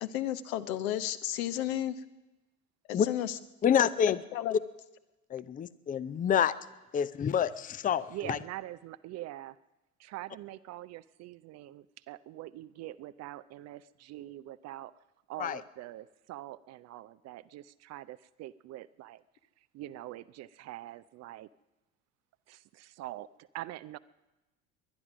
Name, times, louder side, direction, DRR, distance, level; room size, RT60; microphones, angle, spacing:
voice 1, 0.0-2.0 2.9-3.3 4.3-4.6, left 12 dB, 65° left, 12 dB, 1.0 m, -33 dB
voice 2, 3.6-4.2 5.3-6.5 6.9-8.4 15.4-15.6, left 8 dB, 20° left, 17 dB, 0.6 m, -27 dB
voice 3, 8.1-9.6 10.0-14.9 15.3-19.2 19.6-21.5 22.5-24.0, right 15 dB, 35° right, 16 dB, 0.5 m, -44 dB
21.0 x 11.0 x 6.1 m, 1.0 s
figure-of-eight pair, 65°, 45 cm